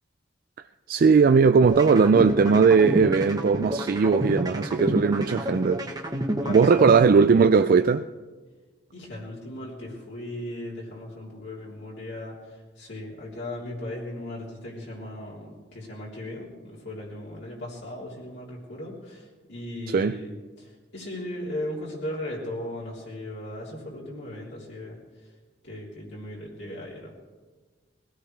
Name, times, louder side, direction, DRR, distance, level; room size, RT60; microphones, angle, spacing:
voice 1, 0.9-5.9 6.5-8.0 19.9-20.2, right 5 dB, 55° right, 0.3 m, -19 dB
sound 1, 1.6-7.6, equal, 20° right, 1.1 m, -29 dB
voice 2, 6.4-6.9 8.9-25.0 25.6-27.1, left 1 dB, 75° left, 3.5 m, -37 dB
21.0 x 16.5 x 3.4 m
head